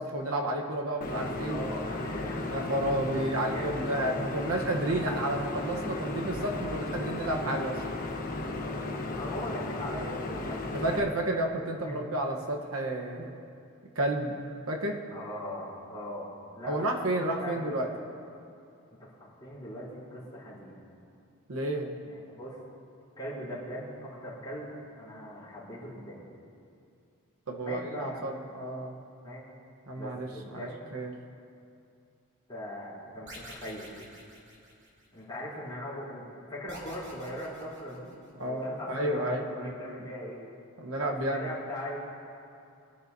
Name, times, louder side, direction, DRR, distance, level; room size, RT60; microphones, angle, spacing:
voice 1, 0.0-2.0 2.5-7.8 10.7-13.3 13.9-15.0 16.7-17.9 21.5-21.9 27.5-29.0 29.9-31.1 38.4-40.0 40.8-41.5, right 1 dB, 70° right, 1 dB, 1.1 m, -31 dB
sound 1, 1.0-11.0, left 2 dB, 40° left, 1.1 m, -35 dB
voice 2, 1.5-2.5 3.1-4.3 8.6-10.8 11.8-12.3 15.1-17.9 19.0-20.8 22.0-22.6 23.2-26.3 27.6-28.2 29.2-29.5 29.9-30.9 32.5-33.9 35.1-38.1 38.4-40.4 41.1-42.0, equal, 20° left, -7 dB, 3.5 m, -40 dB
sound 2, 33.3-35.2 36.7-38.5, right 1 dB, 55° right, 2.7 m, -48 dB
23.0 x 10.5 x 2.7 m, 2.5 s
head